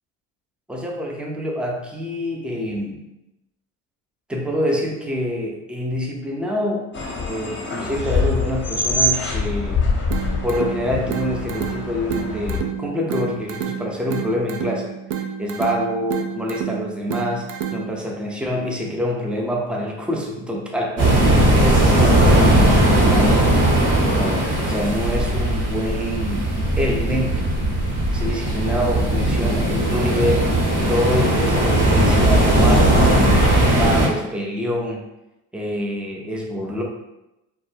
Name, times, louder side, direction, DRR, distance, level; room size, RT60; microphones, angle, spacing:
voice 1, 0.7-3.1 4.3-6.9 7.2-9.9 10.4-15.0 15.4-21.2 21.6-23.6 24.0-27.4 28.1-35.0 35.5-36.8, equal, 5° right, -1 dB, 0.3 m, -26 dB
sound 1, 6.9-12.6, left 2 dB, 25° left, 0.7 m, -24 dB
sound 2, 10.1-18.1, right 8 dB, 65° right, 0.5 m, -30 dB
sound 3, 21.0-34.1, right 1 dB, 45° right, 0.9 m, -18 dB
2.2 x 2.1 x 3.1 m, 0.92 s
hypercardioid pair, 70°, 45 cm